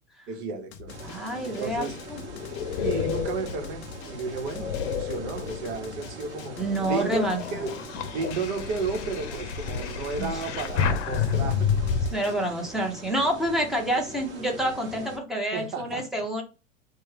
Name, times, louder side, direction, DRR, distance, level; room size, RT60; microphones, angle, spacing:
voice 1, 0.3-0.9 1.4-2.0 2.8-6.6 6.8-7.8 8.1-11.7 15.5-16.0, right 4 dB, 55° right, 1.1 m, -33 dB
Drum, 0.7-12.3, left 8 dB, 30° left, 0.4 m, -45 dB
sound 1, 0.9-15.2, right 2 dB, 30° right, 1.1 m, -43 dB
voice 2, 1.0-2.2 6.6-7.4 10.2-10.3 12.1-16.4, right 1 dB, ahead, 0.8 m, -28 dB
sound 2, 1.7-5.9 6.4-12.1, left 7 dB, 60° left, 0.7 m, -30 dB
3.3 x 2.2 x 3.2 m
hypercardioid pair, 110°, 40 cm